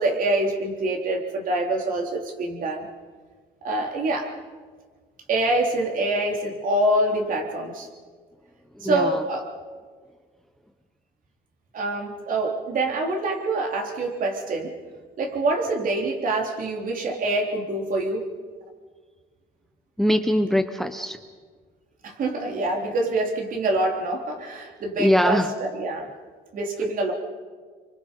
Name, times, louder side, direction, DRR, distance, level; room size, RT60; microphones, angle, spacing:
voice 1, 0.0-2.9 3.6-4.3 5.3-7.9 8.8-9.5 11.7-14.8 15.2-18.3 22.0-26.1 26.5-27.1, right 2 dB, 55° right, 1 dB, 3.7 m, -25 dB
voice 2, 8.8-9.2 20.0-21.2 25.0-25.5, left 1 dB, ahead, 9 dB, 0.9 m, -22 dB
28.0 x 24.0 x 5.4 m, 1.6 s
cardioid pair, 110°, 17 cm